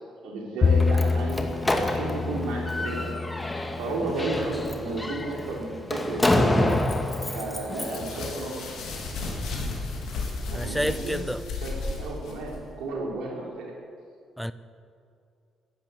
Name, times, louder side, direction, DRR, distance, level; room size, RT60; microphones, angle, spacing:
voice 1, 0.2-6.8 7.3-8.6 10.5-11.2 11.6-13.7, right 2 dB, 75° right, -1 dB, 3.8 m, -33 dB
Bowed string instrument, 0.6-6.9, left 5 dB, 45° left, 0.5 m, -29 dB
Slam, 0.6-8.1, left 1 dB, 20° left, 2.3 m, -28 dB
sound 1, 7.8-12.6, left 3 dB, 70° left, 3.6 m, -33 dB
voice 2, 10.5-11.4 14.4-14.5, equal, ahead, 14 dB, 0.7 m, -29 dB
14.5 x 10.5 x 8.2 m, 2.4 s
hypercardioid pair, 55°, 0 cm